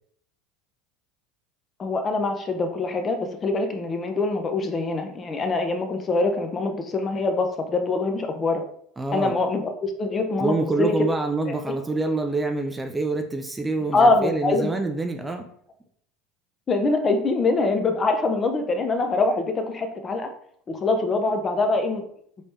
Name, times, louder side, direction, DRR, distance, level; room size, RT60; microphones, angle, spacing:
voice 1, 1.8-8.6 9.1-10.9 11.5-11.6 13.9-14.7 16.7-20.3 20.7-22.0, left 3 dB, 30° left, 5 dB, 0.6 m, -24 dB
voice 2, 9.0-9.3 10.4-15.5, right 3 dB, 15° right, 5 dB, 0.4 m, -26 dB
3.2 x 3.1 x 2.7 m, 0.66 s
hypercardioid pair, 90°, 0 cm